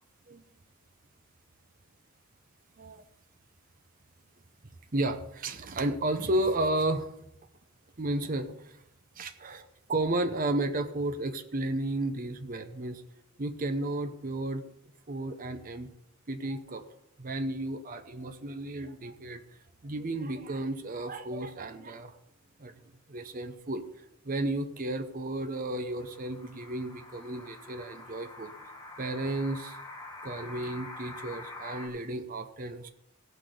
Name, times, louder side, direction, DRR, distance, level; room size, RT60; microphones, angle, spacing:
voice 1, 4.9-7.1 8.0-8.8 9.1-13.0 13.4-14.6 15.1-15.9 16.3-16.9 17.2-22.2 22.6-22.7 23.1-29.8 30.2-32.9, right 1 dB, 40° right, 7 dB, 0.7 m, -33 dB
sound 1, 25.8-31.9, left 2 dB, 20° left, 1.5 m, -46 dB
16.0 x 6.1 x 5.1 m, 0.80 s
head